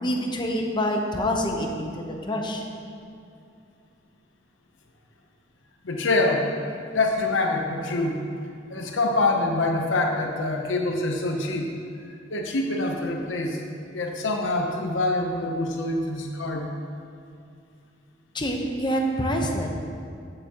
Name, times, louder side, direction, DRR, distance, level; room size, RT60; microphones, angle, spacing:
voice 1, 0.0-2.7 18.3-19.7, equal, 25° left, 2 dB, 0.9 m, -26 dB
voice 2, 5.8-6.5 6.9-8.2 8.7-11.7 12.3-13.6 13.9-16.7, left 2 dB, 90° left, 2 dB, 0.8 m, -25 dB
13.5 x 7.0 x 3.0 m, 2.5 s
head